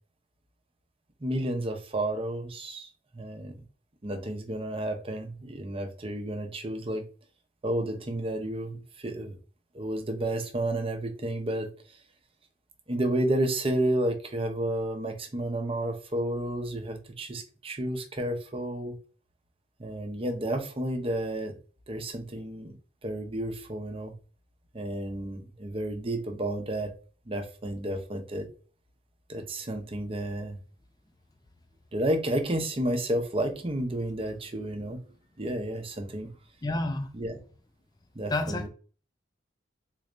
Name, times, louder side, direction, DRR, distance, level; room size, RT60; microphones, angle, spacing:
voice 1, 1.2-3.6 4.0-7.0 7.6-9.4 9.7-11.7 12.9-19.0 19.8-21.6 21.9-22.8 23.0-24.1 24.7-26.9 27.3-28.5 29.3-30.6 31.9-35.0 35.4-36.3 37.1-37.4 38.1-38.7, right 1 dB, 30° right, 0.7 m, -31 dB
voice 2, 36.6-37.1 38.3-38.7, left 2 dB, 20° left, 0.4 m, -29 dB
4.0 x 3.2 x 2.5 m
head